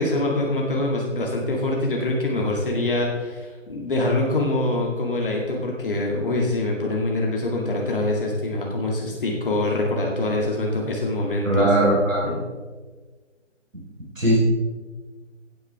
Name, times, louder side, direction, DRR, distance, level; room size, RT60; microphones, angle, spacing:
voice 1, 0.0-11.7 12.2-12.4, left 2 dB, 45° left, -1 dB, 2.2 m, -24 dB
voice 2, 11.4-12.3 14.2-14.4, right 1 dB, 85° right, -4 dB, 4.1 m, -19 dB
16.5 x 9.3 x 3.4 m, 1.4 s
figure-of-eight pair, 150°, 38 cm